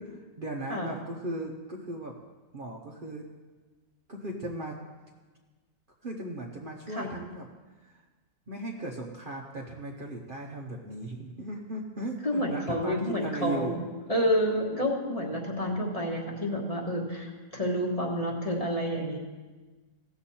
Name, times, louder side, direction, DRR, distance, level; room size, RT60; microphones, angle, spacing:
voice 1, 0.4-2.2 2.5-3.3 4.1-4.8 6.0-7.5 7.8-8.0 8.5-13.8, right 1 dB, 45° right, 0 dB, 0.9 m, -37 dB
voice 2, 12.2-13.8 14.1-19.2, equal, 25° left, -1 dB, 1.4 m, -29 dB
16.5 x 7.0 x 4.3 m, 1.3 s
omnidirectional pair, 1.5 m